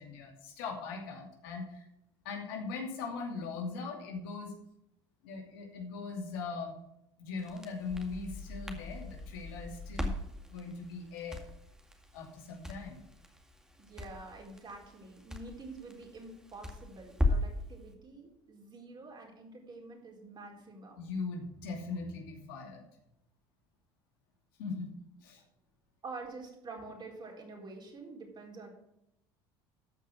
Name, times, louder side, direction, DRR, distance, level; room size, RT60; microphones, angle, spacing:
voice 1, 0.0-1.9 2.2-4.5 5.2-6.8 7.2-10.1 10.5-11.4 12.1-13.0 21.0-22.8 24.6-24.9 25.2-25.4, left 4 dB, 80° left, 2 dB, 2.5 m, -40 dB
Crackle, 7.4-17.6, left 2 dB, 5° right, 2.1 m, -38 dB
voice 2, 13.8-21.0 26.0-28.7, right 3 dB, 40° right, 0 dB, 4.2 m, -47 dB
13.0 x 5.5 x 6.2 m, 0.81 s
hypercardioid pair, 80°, 12 cm